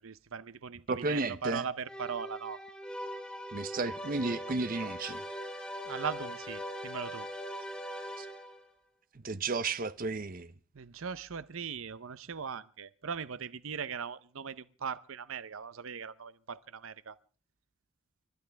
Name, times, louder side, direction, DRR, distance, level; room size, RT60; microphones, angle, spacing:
voice 1, 0.0-2.6 5.9-7.3 10.7-17.2, right 6 dB, 75° right, 0.7 m, -39 dB
voice 2, 0.9-1.7 3.5-5.2 8.2-8.3 9.2-10.5, right 3 dB, 40° right, 0.7 m, -33 dB
sound 1, 1.9-8.7, equal, 5° left, 3.2 m, -41 dB
29.0 x 13.0 x 3.4 m
head